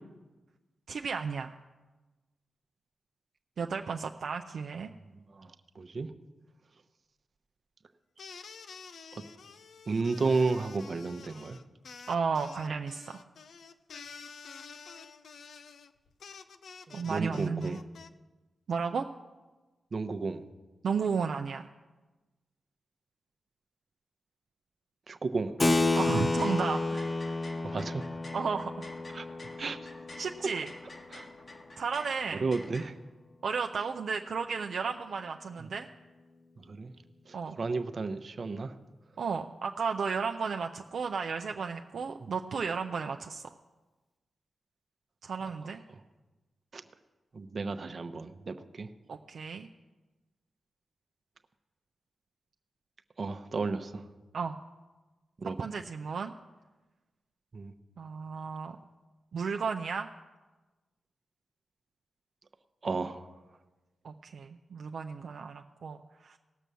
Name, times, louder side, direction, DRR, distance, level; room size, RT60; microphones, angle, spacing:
voice 1, 0.9-1.6 3.6-4.9 12.1-13.2 16.9-17.8 18.7-19.1 20.8-21.7 26.0-27.4 28.3-28.9 30.2-30.7 31.8-32.5 33.4-35.9 37.3-37.6 39.2-43.5 45.2-45.8 49.1-49.7 54.3-54.6 55.6-56.3 58.0-58.8 59.3-60.1 64.0-66.4, right 5 dB, 70° right, 4 dB, 0.5 m, -33 dB
voice 2, 5.2-6.1 9.1-9.2 9.9-11.6 16.9-17.8 19.9-20.4 25.1-25.6 27.6-28.0 29.1-29.3 29.6-29.8 31.1-31.3 32.4-33.0 35.6-35.7 36.6-36.9 37.3-38.8 46.7-46.8 47.3-48.9 53.2-54.1 55.4-55.7 57.5-57.7 62.8-63.3, right 4 dB, 55° right, 9 dB, 0.9 m, -33 dB
sound 1, 8.2-18.1, left 5 dB, 75° left, 0.6 m, -49 dB
sound 2, 25.5-32.9, left 2 dB, 50° left, 1.9 m, -50 dB
Keyboard (musical), 25.6-31.6, left 2 dB, 25° left, 0.5 m, -31 dB
18.0 x 6.1 x 6.8 m, 1.2 s
cardioid pair, 60°, 0 cm